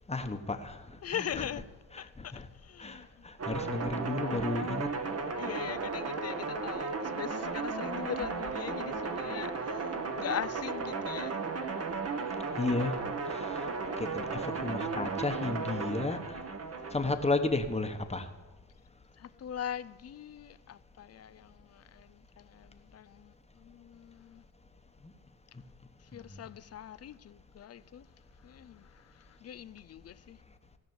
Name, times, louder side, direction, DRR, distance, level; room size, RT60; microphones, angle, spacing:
voice 1, 0.1-0.8 1.1-1.4 1.9-2.5 2.8-4.9 12.6-13.0 13.3-13.7 14.0-16.2 16.9-18.3, left 2 dB, 15° left, 1.2 m, -33 dB
voice 2, 1.0-1.6 2.0-2.3 2.6-3.3 5.4-11.6 19.2-24.4 26.1-28.1 28.4-30.4, left 10 dB, 40° left, 0.5 m, -41 dB
sound 1, 3.4-17.1, right 4 dB, 40° right, 1.4 m, -35 dB
16.5 x 6.1 x 9.4 m
cardioid pair, 100°, 39 cm